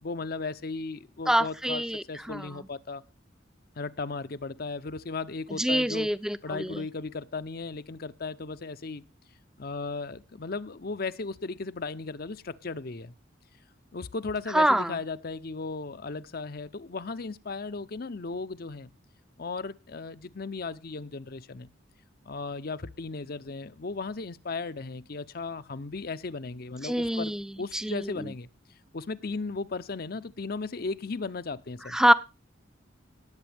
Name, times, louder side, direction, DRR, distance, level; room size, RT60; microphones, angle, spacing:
voice 1, 0.0-1.8 2.1-3.0 3.8-6.1 6.4-9.0 9.6-13.1 13.9-18.9 19.4-21.7 22.3-28.5 28.9-32.0, left 3 dB, 55° left, 0.7 m, -36 dB
voice 2, 1.3-2.7 5.5-6.9 14.5-15.0 26.8-28.3 31.9-32.1, right 1 dB, 5° right, 0.6 m, -26 dB
19.0 x 8.1 x 3.4 m
head